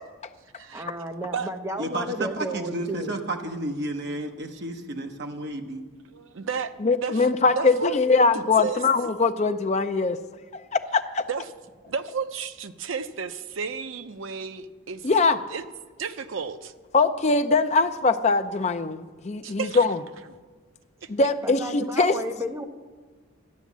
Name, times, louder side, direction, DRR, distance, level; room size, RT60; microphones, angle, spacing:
voice 1, 0.7-3.1 21.4-22.6, equal, 15° right, 4 dB, 0.7 m, -32 dB
voice 2, 1.8-5.8, right 1 dB, 50° right, 4 dB, 1.0 m, -32 dB
voice 3, 6.1-6.7 7.0-7.3 7.6-7.9 8.3-8.8 11.3-11.4 11.9-15.1 15.5-15.6 16.0-16.7 19.4-19.9 21.0-21.1, right 6 dB, 65° right, 10 dB, 0.6 m, -32 dB
voice 4, 6.8-10.2 10.5-11.2 15.0-15.4 16.9-20.0 21.1-22.2, left 3 dB, 30° left, 9 dB, 0.5 m, -22 dB
12.0 x 9.2 x 7.3 m, 1.4 s
head